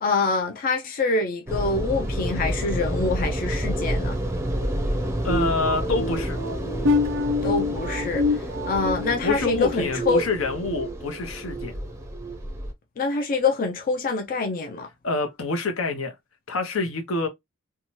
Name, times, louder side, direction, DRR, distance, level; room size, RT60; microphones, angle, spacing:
voice 1, 0.0-4.2 7.4-10.2 13.0-14.9, left 3 dB, 45° left, 0.4 m, -25 dB
sound 1, 1.5-12.7, equal, 15° right, 0.5 m, -29 dB
voice 2, 5.2-6.4 9.2-11.7 15.0-16.1 16.5-17.3, left 3 dB, 80° left, 0.8 m, -27 dB
sound 2, 5.3-10.9 11.4-11.7 12.2-12.4, left 2 dB, 65° right, 0.4 m, -28 dB
2.7 x 2.3 x 3.0 m
head